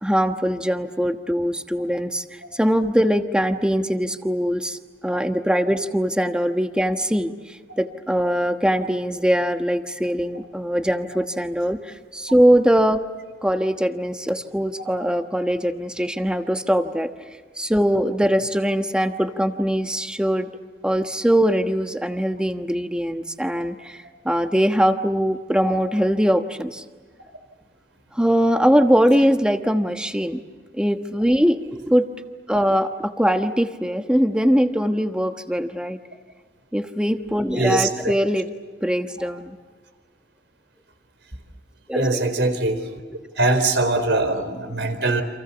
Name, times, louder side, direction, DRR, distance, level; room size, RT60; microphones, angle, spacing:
voice 1, 0.0-13.0 13.4-17.1 17.6-20.5 20.8-26.8 28.1-30.4 30.7-32.1 32.5-36.0 36.7-38.5 38.8-39.6 41.9-42.0, equal, 5° right, 6 dB, 1.2 m, -21 dB
voice 2, 37.5-38.1 41.9-42.9 43.4-45.2, right 2 dB, 75° right, 8 dB, 4.4 m, -22 dB
29.5 x 27.5 x 7.2 m, 1.5 s
head